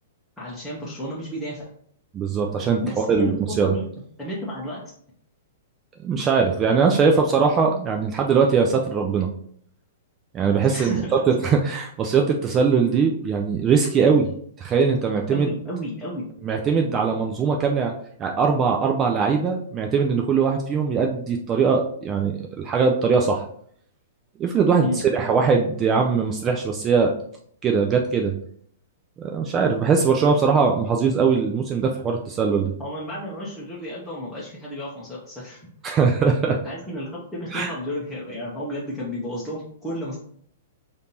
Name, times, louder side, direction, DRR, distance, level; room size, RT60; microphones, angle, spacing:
voice 1, 0.4-1.6 2.8-3.9 4.2-4.8 10.7-11.2 15.3-16.2 24.8-25.0 32.8-35.7 36.6-40.2, equal, 5° left, -8 dB, 0.9 m, -32 dB
voice 2, 2.1-3.7 6.0-9.3 10.3-14.3 14.6-15.5 16.4-17.9 18.2-23.5 24.4-27.1 27.6-28.3 29.2-32.7 35.8-36.6 37.5-37.7, right 5 dB, 25° right, 2 dB, 0.4 m, -21 dB
5.0 x 2.7 x 2.9 m, 0.62 s
figure-of-eight pair, 110°, 0 cm